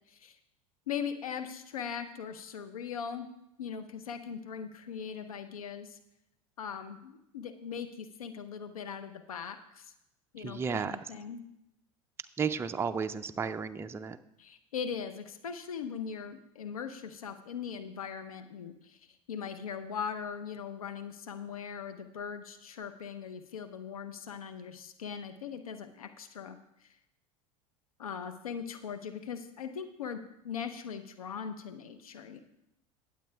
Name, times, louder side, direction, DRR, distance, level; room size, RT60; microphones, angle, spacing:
voice 1, 0.9-3.3 3.6-6.0 6.6-9.9 10.3-11.4 14.4-19.0 19.3-26.6 26.8-26.9 28.0-32.4, left 7 dB, 80° left, 8 dB, 0.8 m, -40 dB
voice 2, 10.4-11.0 12.4-14.2, right 6 dB, 15° right, 9 dB, 0.4 m, -33 dB
23.0 x 7.8 x 2.3 m, 0.84 s
hypercardioid pair, 80°, 18 cm